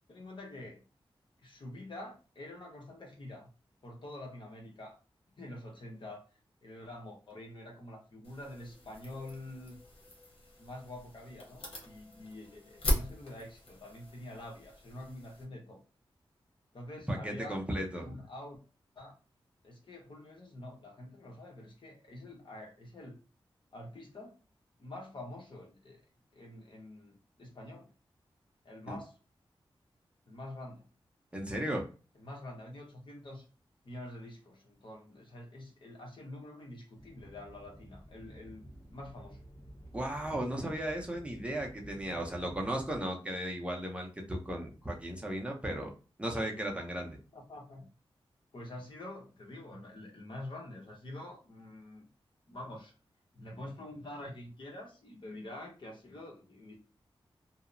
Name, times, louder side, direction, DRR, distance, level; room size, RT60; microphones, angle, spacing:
voice 1, 0.1-0.8 1.4-3.5 3.8-5.0 5.4-6.2 6.6-9.8 10.6-15.8 16.7-17.6 18.0-18.6 19.0-19.2 19.6-23.2 23.7-24.4 24.8-26.0 26.3-27.9 28.6-29.2 30.3-30.8 32.2-33.4 33.8-38.7 38.9-39.4 47.3-47.9 48.5-52.1 52.5-52.9 53.3-56.8, left 1 dB, 60° left, 0 dB, 0.9 m, -46 dB
sound 1, 8.2-15.4, left 1 dB, 85° left, 0.9 m, -39 dB
voice 2, 17.1-18.2 28.9-29.0 31.3-31.8 39.9-45.9 46.2-47.2, right 1 dB, 10° right, 0 dB, 0.6 m, -35 dB
sound 2, 36.9-43.0, equal, 30° left, 1.4 m, -51 dB
2.8 x 2.0 x 2.5 m, 0.34 s
wide cardioid pair, 95°, 9 cm